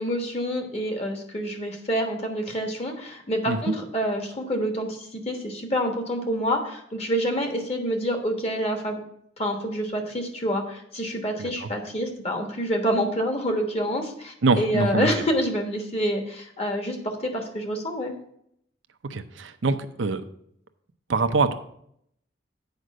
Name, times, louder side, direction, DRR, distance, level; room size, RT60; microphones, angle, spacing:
voice 1, 0.0-9.0 9.4-18.1, equal, 35° left, 4 dB, 1.3 m, -27 dB
voice 2, 14.4-15.1 19.1-20.2 21.1-21.5, right 3 dB, 85° right, 9 dB, 0.6 m, -24 dB
8.0 x 5.1 x 6.2 m, 0.71 s
head